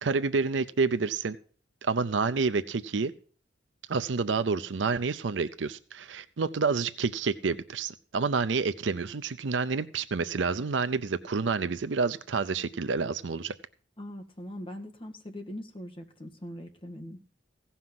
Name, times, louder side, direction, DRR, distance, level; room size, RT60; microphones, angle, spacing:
voice 1, 0.0-1.4 1.8-3.1 3.9-13.5, right 4 dB, 75° right, 11 dB, 0.6 m, -28 dB
voice 2, 14.0-17.3, equal, 30° left, 3 dB, 1.8 m, -41 dB
16.0 x 5.7 x 7.6 m, 0.43 s
head